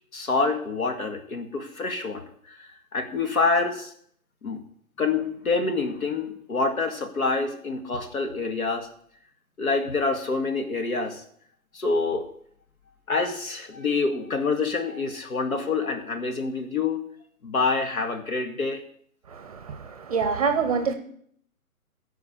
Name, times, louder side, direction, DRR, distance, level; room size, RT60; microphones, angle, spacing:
voice 1, 0.1-3.9 4.4-4.6 5.0-8.9 9.6-11.2 11.7-12.3 13.1-17.0 17.4-18.8, left 4 dB, 70° left, 5 dB, 2.1 m, -27 dB
voice 2, 19.3-20.9, right 5 dB, 25° right, 9 dB, 0.7 m, -26 dB
14.5 x 5.0 x 7.0 m, 0.65 s
hypercardioid pair, 150°, 44 cm